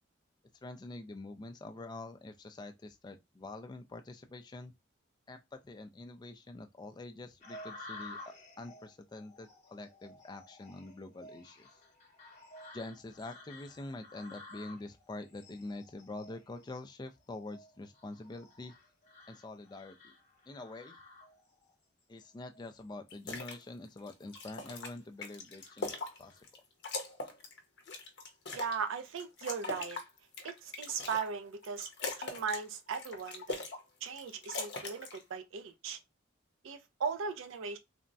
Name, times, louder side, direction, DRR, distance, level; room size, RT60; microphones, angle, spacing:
voice 1, 0.6-4.7 5.3-11.7 12.7-18.7 19.3-20.1 20.5-21.0 22.1-26.4, left 2 dB, 20° left, 0.3 m, -46 dB
sound 1, 7.4-21.7 22.2-22.8 23.3-23.5 24.1-24.7 25.2-26.4, left 2 dB, 35° left, 0.9 m, -53 dB
sound 2, 23.1-23.6 24.0-26.6 26.8-28.8 29.2-31.3 31.6-32.6 32.9-33.8 34.1-35.2, left 3 dB, 60° left, 0.6 m, -41 dB
voice 2, 28.5-30.0 30.4-33.6 34.0-36.0 36.6-37.8, right 6 dB, 80° right, 0.4 m, -38 dB
3.4 x 2.0 x 2.5 m
head